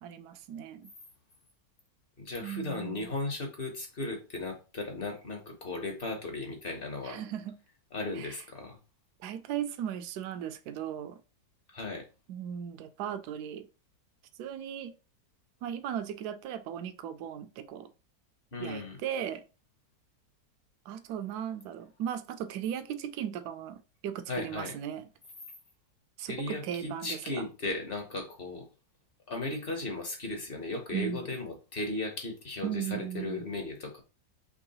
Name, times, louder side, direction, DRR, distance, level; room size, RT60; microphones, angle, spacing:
voice 1, 0.0-0.9 2.4-3.1 7.0-7.6 8.2-8.4 9.2-11.2 12.3-13.7 14.4-14.9 15.6-17.9 18.6-19.4 20.9-25.1 26.2-27.2 30.9-31.3 32.6-33.5, right 10 dB, 75° right, 1.1 m, -37 dB
voice 2, 2.2-7.2 7.9-8.8 11.7-12.0 18.5-19.0 24.3-24.7 26.3-28.7 29.3-34.0, left 2 dB, 40° left, 0.9 m, -36 dB
3.8 x 3.0 x 4.0 m
omnidirectional pair, 1.8 m